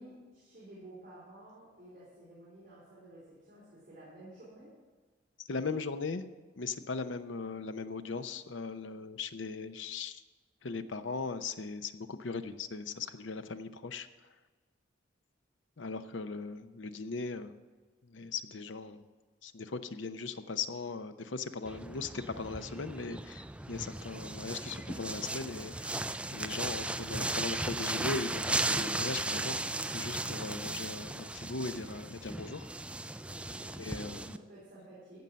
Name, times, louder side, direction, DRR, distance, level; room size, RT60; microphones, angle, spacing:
voice 1, 0.0-4.7 33.2-35.2, right 1 dB, 45° right, -8 dB, 4.2 m, -53 dB
voice 2, 5.5-6.2 6.6-10.2 10.6-14.1 15.8-17.5 18.0-19.1 19.4-29.6 29.9-32.7 33.8-34.4, left 4 dB, 80° left, 11 dB, 0.7 m, -39 dB
sound 1, 21.7-34.4, right 2 dB, 5° right, 0.3 m, -36 dB
15.0 x 5.5 x 7.5 m, 1.4 s
head